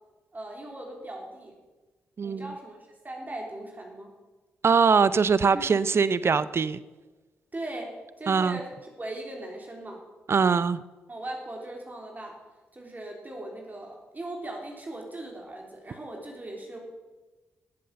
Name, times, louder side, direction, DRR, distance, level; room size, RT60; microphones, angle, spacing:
voice 1, 0.3-1.6 2.2-2.8 3.0-4.1 5.5-5.7 7.5-8.7 9.0-10.0 11.1-12.4 12.7-16.8, right 1 dB, 30° right, 0 dB, 3.4 m, -39 dB
voice 2, 2.2-2.5 4.6-6.8 8.3-8.6 10.3-10.8, right 5 dB, 45° right, 16 dB, 0.6 m, -22 dB
14.5 x 7.8 x 6.4 m, 1.2 s
hypercardioid pair, 40°, 6 cm